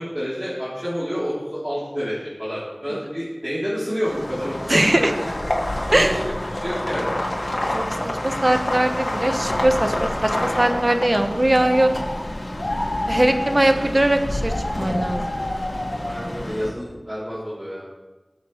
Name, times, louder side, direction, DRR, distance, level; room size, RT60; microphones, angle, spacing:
voice 1, 0.0-5.1 5.9-6.2 6.5-7.1 13.7-14.0 16.0-17.8, equal, 20° right, -9 dB, 3.0 m, -29 dB
sound 1, 4.0-16.7, left 1 dB, 60° left, 1.7 m, -28 dB
voice 2, 4.7-5.1 5.9-6.1 7.7-7.8 8.2-11.9 13.1-15.2, right 1 dB, 45° right, 6 dB, 1.0 m, -20 dB
sound 2, 11.2-12.3 12.6-13.7 14.5-16.4, left 1 dB, 85° left, 2.6 m, -30 dB
18.5 x 7.1 x 3.1 m, 1.2 s
wide cardioid pair, 45°, 0 cm